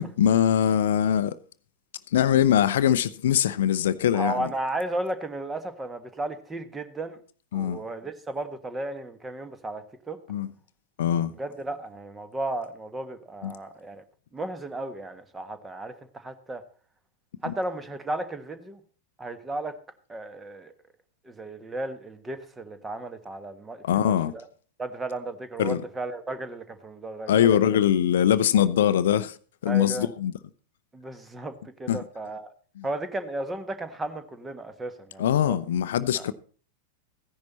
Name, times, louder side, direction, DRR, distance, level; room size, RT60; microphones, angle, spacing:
voice 1, 0.0-1.3 2.1-4.5 7.5-7.8 10.3-10.5 11.0-11.3 13.4-13.5 23.8-24.3 25.6-25.8 27.3-29.4 29.6-30.3 31.9-32.0 32.8-32.9 35.2-36.3, left 10 dB, 60° left, 0.6 m, -22 dB
voice 2, 4.1-7.2 7.5-10.2 11.1-14.0 14.3-16.6 17.4-18.8 19.2-19.7 20.1-20.7 21.2-24.5 24.8-27.8 28.5-28.6 29.7-30.1 30.9-32.5 32.8-35.6 36.1-36.2, right 2 dB, 10° right, 1.4 m, -34 dB
15.0 x 10.5 x 4.2 m
figure-of-eight pair, 90°, 0 cm